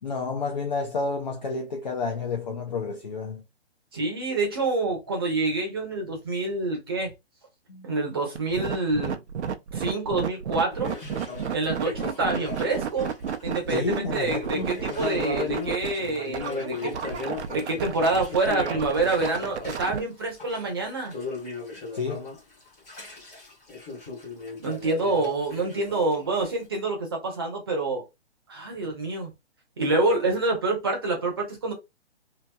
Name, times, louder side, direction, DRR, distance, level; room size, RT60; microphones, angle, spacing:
voice 1, 0.0-3.4 7.7-8.0 13.7-14.8 21.9-22.3, left 4 dB, 40° left, 0.5 m, -30 dB
voice 2, 3.9-7.1 7.8-9.2 9.7-10.9 11.5-13.1 13.4-13.8 14.1-17.0 17.5-21.2 24.6-28.0 28.5-29.3 29.8-31.7, right 2 dB, 20° right, 0.7 m, -27 dB
sound 1, 8.4-20.0, right 7 dB, 85° right, 0.6 m, -32 dB
sound 2, 10.7-13.6 13.9-26.6, left 4 dB, 10° left, 0.8 m, -37 dB
2.9 x 2.6 x 2.2 m
hypercardioid pair, 175°, 33 cm